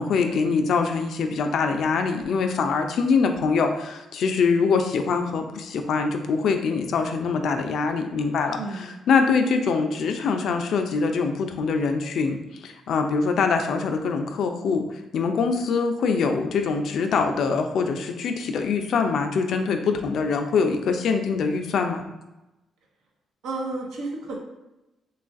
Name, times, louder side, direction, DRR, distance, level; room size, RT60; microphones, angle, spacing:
voice 1, 0.0-12.4 12.6-14.9 15.1-22.0, left 5 dB, 70° left, 6 dB, 0.3 m, -24 dB
voice 2, 23.4-24.3, right 2 dB, 85° right, -1 dB, 0.6 m, -32 dB
3.0 x 2.3 x 2.5 m, 0.97 s
cardioid pair, 85°, 0 cm